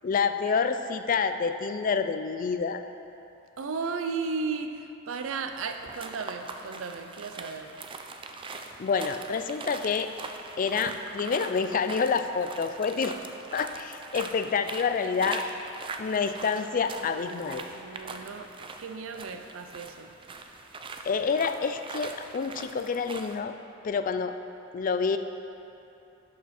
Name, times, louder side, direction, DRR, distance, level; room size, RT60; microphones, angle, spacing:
voice 1, 0.0-2.8 8.8-10.1 10.6-13.2 13.5-15.4 16.0-17.6 21.0-23.6 23.8-24.4 24.7-25.2, left 5 dB, 40° left, 9 dB, 0.4 m, -28 dB
voice 2, 3.6-7.7 16.8-18.5 18.8-20.1, right 4 dB, 75° right, 7 dB, 0.5 m, -35 dB
sound 1, 5.5-23.4, right 3 dB, 25° right, 0.4 m, -42 dB
11.0 x 5.8 x 4.2 m, 2.8 s
head